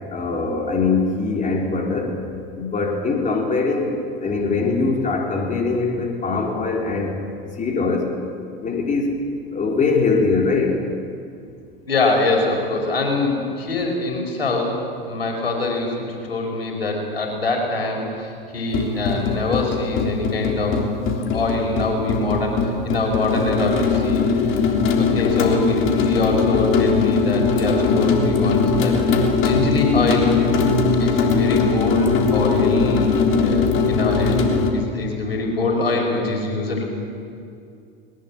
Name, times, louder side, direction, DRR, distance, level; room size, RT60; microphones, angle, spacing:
voice 1, 0.1-2.2 2.5-7.2 7.5-8.2 8.6-9.1 9.5-10.8, left 4 dB, 25° left, 1 dB, 4.1 m, -22 dB
voice 2, 11.9-20.9 21.1-24.6 25.0-30.4 31.0-33.1 33.4-34.4 34.7-36.8, left 3 dB, 85° left, 1 dB, 5.4 m, -24 dB
sound 1, 18.7-34.7, left 4 dB, 45° left, 3.4 m, -20 dB
21.0 x 20.0 x 8.7 m, 2.4 s
hypercardioid pair, 90°, 29 cm